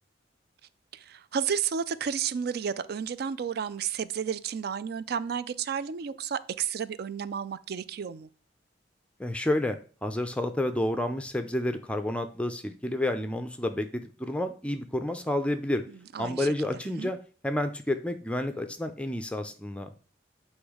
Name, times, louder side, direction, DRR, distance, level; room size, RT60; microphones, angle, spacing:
voice 1, 0.9-8.3 16.1-16.5 17.0-17.1, right 7 dB, 60° right, 0.4 m, -32 dB
voice 2, 9.2-15.8 16.2-17.2 17.4-19.9, left 1 dB, 5° left, 0.4 m, -30 dB
8.0 x 3.1 x 4.8 m
head